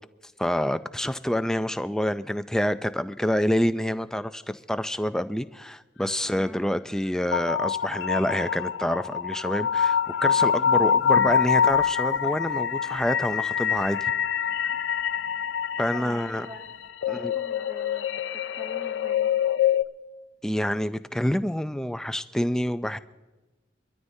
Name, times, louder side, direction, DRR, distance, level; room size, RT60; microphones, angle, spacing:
voice 1, 0.2-14.1 15.8-16.5 17.1-17.3 20.4-23.0, equal, 5° left, 11 dB, 0.3 m, -27 dB
voice 2, 6.3-6.6 15.6-16.7 17.0-18.2 18.5-19.3, equal, 10° right, -5 dB, 2.0 m, -45 dB
sound 1, 7.3-19.8, left 7 dB, 70° left, 0.4 m, -25 dB
sound 2, 9.7-16.9, left 2 dB, 85° left, 0.8 m, -47 dB
24.0 x 13.0 x 2.7 m, 1.1 s
head